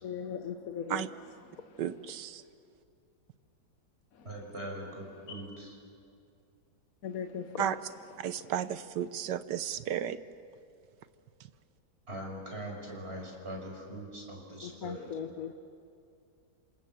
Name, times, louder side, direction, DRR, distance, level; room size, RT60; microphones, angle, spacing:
voice 1, 0.0-1.0 1.5-1.8 4.1-4.3 5.3-5.4 7.0-7.7 14.6-15.5, left 7 dB, 60° left, 7 dB, 1.2 m, -39 dB
voice 2, 1.8-2.4 7.6-7.8 8.2-10.2, right 10 dB, 75° right, 13 dB, 1.4 m, -33 dB
voice 3, 4.2-5.7 12.1-15.1, right 1 dB, 35° right, 0 dB, 5.8 m, -41 dB
27.5 x 26.5 x 7.5 m, 2.5 s
omnidirectional pair, 1.9 m